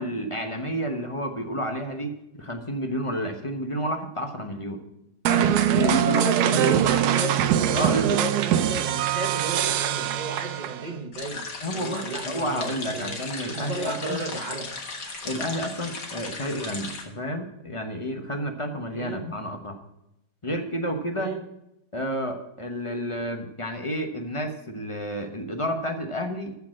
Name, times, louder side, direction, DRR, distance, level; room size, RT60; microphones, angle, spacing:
voice 1, 0.0-4.8 5.3-6.8 7.7-8.2 11.6-14.2 15.2-19.8 20.4-21.3 21.9-26.5, equal, 25° left, 4 dB, 0.8 m, -30 dB
sound 1, 5.3-10.9, right 10 dB, 75° right, 1.1 m, -23 dB
voice 2, 6.1-13.2 13.5-14.7 18.9-19.2 21.1-21.4, right 3 dB, 30° right, 4 dB, 1.0 m, -33 dB
sound 2, 11.1-17.0, left 3 dB, 75° left, 2.2 m, -36 dB
14.0 x 4.8 x 7.4 m, 0.83 s
omnidirectional pair, 1.8 m